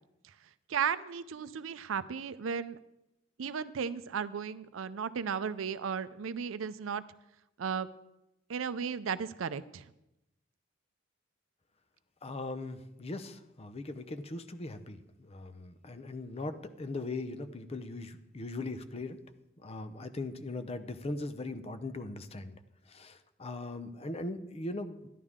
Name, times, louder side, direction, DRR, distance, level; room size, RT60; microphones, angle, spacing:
voice 1, 0.7-2.8 3.4-7.0 7.6-7.9 8.5-9.9, right 6 dB, 90° right, 16 dB, 0.5 m, -35 dB
voice 2, 12.2-19.2 19.6-22.6 22.9-25.1, left 2 dB, 30° left, 10 dB, 0.7 m, -40 dB
12.0 x 11.0 x 3.6 m, 0.91 s
head